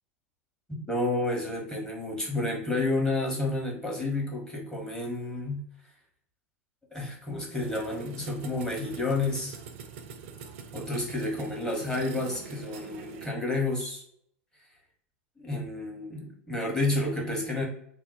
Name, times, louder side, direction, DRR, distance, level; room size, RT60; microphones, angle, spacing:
voice 1, 0.9-5.6 6.9-9.6 10.7-14.0 15.4-17.6, left 2 dB, 10° left, -2 dB, 1.0 m, -30 dB
sound 1, 7.6-13.3, right 7 dB, 60° right, 0.4 m, -44 dB
2.6 x 2.0 x 3.9 m, 0.69 s
figure-of-eight pair, 85°, 7 cm